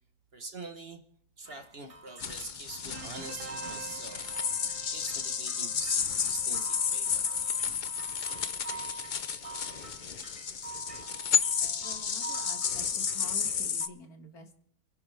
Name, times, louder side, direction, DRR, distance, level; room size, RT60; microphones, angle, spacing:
voice 1, 0.3-1.0 1.4-4.4 4.9-7.6, right 2 dB, 40° right, 1.4 m, -44 dB
sound 1, 1.5-13.9, right 4 dB, 25° right, 1.1 m, -46 dB
sound 2, 2.2-13.9, left 7 dB, 50° left, 0.5 m, -32 dB
sound 3, 2.9-10.2, right 6 dB, 75° right, 1.4 m, -50 dB
voice 2, 11.8-14.6, left 2 dB, 70° left, 2.2 m, -48 dB
29.0 x 11.0 x 3.4 m
omnidirectional pair, 1.7 m